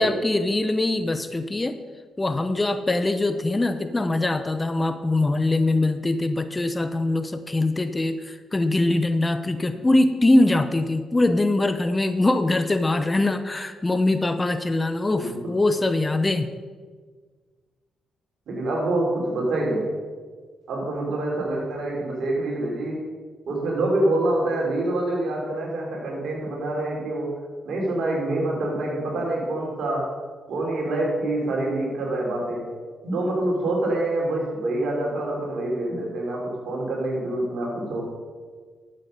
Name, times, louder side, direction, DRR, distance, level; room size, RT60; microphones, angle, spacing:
voice 1, 0.0-1.8 2.2-16.5, left 2 dB, 25° left, 10 dB, 0.8 m, -22 dB
voice 2, 15.2-15.5 18.5-19.9 20.7-23.0 23.5-27.3 27.6-30.1 30.5-32.6 33.0-38.0, right 1 dB, 65° right, -2 dB, 3.6 m, -26 dB
12.0 x 7.7 x 5.3 m, 1.5 s
hypercardioid pair, 40°, 0 cm